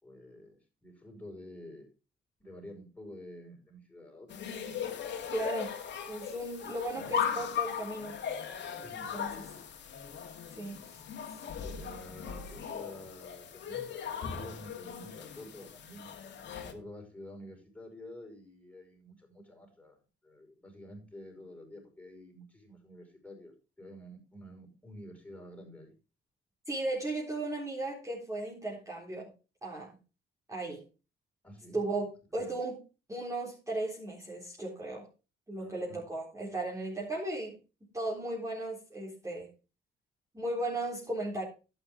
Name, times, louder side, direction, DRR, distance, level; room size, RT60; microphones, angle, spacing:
voice 1, 0.0-1.9 2.4-4.5 8.8-9.2 11.6-16.1 16.6-20.0 20.2-25.9 31.4-31.8 32.3-32.5 35.6-36.1, left 1 dB, 5° left, 1 dB, 5.4 m, -49 dB
sound 1, 4.3-16.7, left 8 dB, 65° left, 2.2 m, -38 dB
voice 2, 5.3-5.7 6.1-8.2 9.0-9.5 10.5-11.0 26.7-29.3 29.6-29.9 30.5-30.8 31.7-32.8 33.1-35.1 35.5-37.5 37.9-39.5 40.3-41.4, right 2 dB, 15° right, -5 dB, 3.8 m, -36 dB
11.5 x 8.9 x 3.7 m, 0.31 s
cardioid pair, 90°, 20 cm